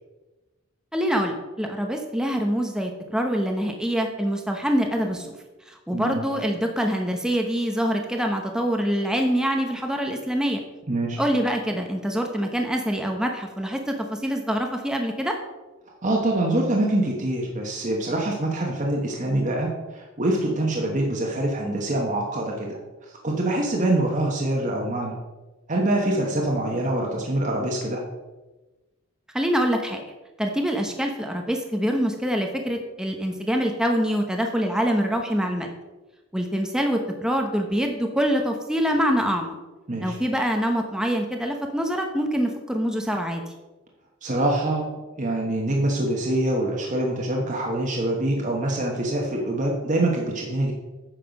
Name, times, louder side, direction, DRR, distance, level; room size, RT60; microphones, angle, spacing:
voice 1, 0.9-5.3 5.7-10.6 11.2-15.3 29.3-30.0 30.4-35.7 36.3-39.5 40.0-43.4, equal, 5° right, 3 dB, 0.9 m, -25 dB
voice 2, 10.9-11.2 16.0-22.8 23.1-25.2 25.7-28.0 39.9-40.2 44.2-44.9 45.2-50.7, right 1 dB, 35° right, -1 dB, 1.3 m, -25 dB
9.1 x 6.6 x 5.3 m, 1.1 s
head